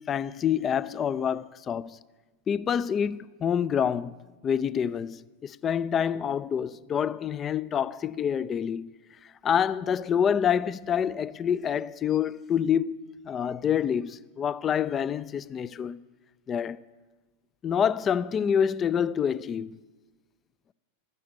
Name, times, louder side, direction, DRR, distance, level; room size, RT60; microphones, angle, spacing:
voice 1, 0.0-2.0 2.5-4.2 4.4-8.9 9.4-16.0 16.5-16.8 17.6-19.8, left 8 dB, 25° left, 0.3 m, -27 dB
13.5 x 9.7 x 8.3 m
figure-of-eight pair, 90°, 0 cm